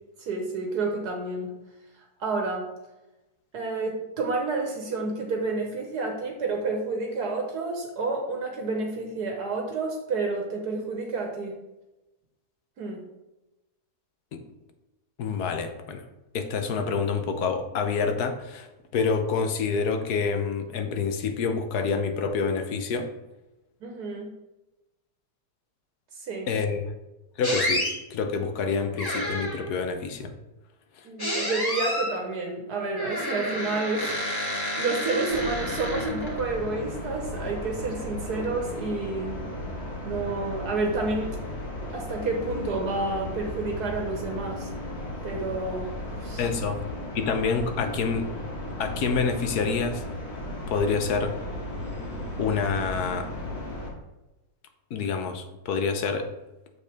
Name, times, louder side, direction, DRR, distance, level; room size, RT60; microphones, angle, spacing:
voice 1, 0.2-1.5 2.2-2.7 3.5-11.6 12.8-13.0 23.8-24.3 26.3-26.5 31.0-39.4 40.0-41.4 41.9-44.7 45.2-46.4, right 3 dB, 75° right, 2 dB, 1.6 m, -30 dB
voice 2, 15.2-16.0 16.3-18.7 18.9-23.1 26.5-26.8 27.4-30.3 46.4-46.8 47.1-48.3 48.8-50.0 50.7-51.4 52.4-53.3 54.9-56.3, left 5 dB, 70° left, 7 dB, 1.3 m, -27 dB
sound 1, 27.4-27.9 29.0-29.7 31.2-32.2 32.9-36.4, left 1 dB, 15° left, 1.8 m, -30 dB
sound 2, 35.3-53.9, left 1 dB, 40° left, 2.0 m, -35 dB
7.7 x 6.6 x 3.4 m, 1.0 s
omnidirectional pair, 1.7 m